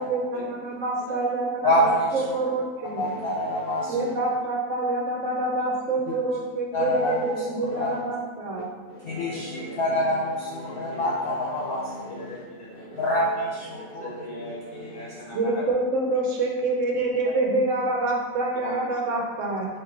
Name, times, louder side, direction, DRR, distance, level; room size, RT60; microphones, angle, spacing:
voice 1, 0.0-3.0 3.9-8.7 15.3-19.7, right 2 dB, 70° right, 0 dB, 1.0 m, -26 dB
voice 2, 1.6-2.4 3.0-4.1 6.7-8.0 8.9-12.3 12.8-14.1 14.7-15.2, equal, 60° left, -4 dB, 0.6 m, -27 dB
voice 3, 9.3-10.1 10.7-11.1 12.1-13.0 14.0-15.6 18.5-18.8, left 1 dB, 45° left, -6 dB, 1.1 m, -40 dB
4.3 x 3.0 x 3.8 m, 1.4 s
omnidirectional pair, 1.4 m